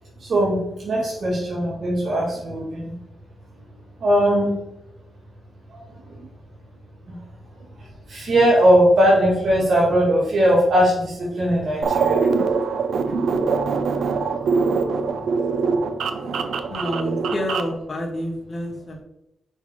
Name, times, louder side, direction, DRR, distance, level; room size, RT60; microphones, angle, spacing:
voice 1, 0.2-2.9 4.0-4.6 5.7-5.8 8.1-12.3 14.4-15.1, equal, 60° right, -6 dB, 2.2 m, -19 dB
sound 1, 11.8-17.8, right 5 dB, 80° right, 0.5 m, -23 dB
voice 2, 16.7-19.0, equal, 40° left, -1 dB, 1.7 m, -28 dB
5.6 x 5.5 x 3.1 m, 0.85 s
wide cardioid pair, 145°, 0 cm